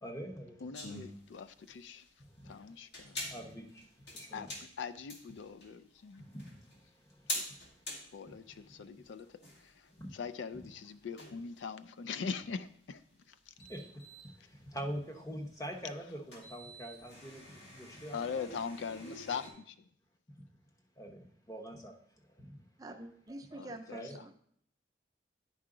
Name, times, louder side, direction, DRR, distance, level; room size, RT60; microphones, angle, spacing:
voice 1, 0.0-0.6 2.2-2.5 3.0-4.5 6.2-7.7 8.3-8.8 10.0-10.1 10.5-10.6 13.6-18.6 20.4-20.5 21.0-21.9 22.4-22.6 23.9-24.2, equal, 20° left, 2 dB, 0.9 m, -45 dB
voice 2, 0.6-2.1 2.4-3.2 4.3-6.2 7.3-7.4 8.1-13.0 13.3-13.5 18.1-19.8 23.6-24.0, left 6 dB, 85° left, 13 dB, 0.4 m, -42 dB
sound 1, 0.7-19.5, left 1 dB, 65° left, 2.1 m, -47 dB
voice 3, 22.8-24.3, right 2 dB, 20° right, 5 dB, 0.5 m, -46 dB
10.0 x 4.8 x 3.8 m, 0.64 s
head